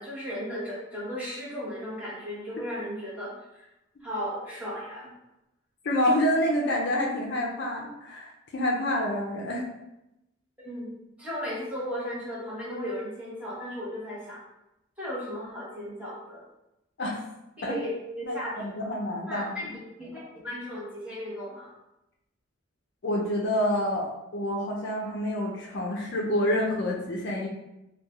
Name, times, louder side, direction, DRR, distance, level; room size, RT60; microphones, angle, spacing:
voice 1, 0.0-3.6 4.0-5.1 10.6-14.4 15.0-16.4 17.6-18.9 19.3-19.7 20.0-21.7, equal, 5° right, -8 dB, 0.9 m, -36 dB
voice 2, 5.8-9.7 17.0-17.2 17.6-17.8 18.2-19.7 23.0-27.5, left 1 dB, 55° left, -1 dB, 0.4 m, -28 dB
3.1 x 2.2 x 2.3 m, 0.90 s
head